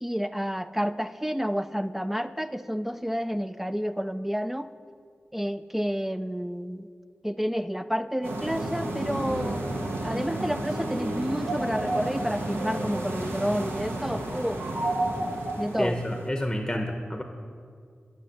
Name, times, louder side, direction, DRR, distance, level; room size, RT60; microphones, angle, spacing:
voice 1, 0.0-4.7 5.3-6.9 7.2-14.6 15.6-16.0, equal, 5° right, 12 dB, 0.3 m, -30 dB
sound 1, 8.2-16.3, right 1 dB, 85° right, 1.1 m, -31 dB
voice 2, 15.8-17.2, left 1 dB, 15° left, 4 dB, 0.8 m, -29 dB
10.0 x 6.0 x 6.6 m, 2.2 s
cardioid pair, 45°, 4 cm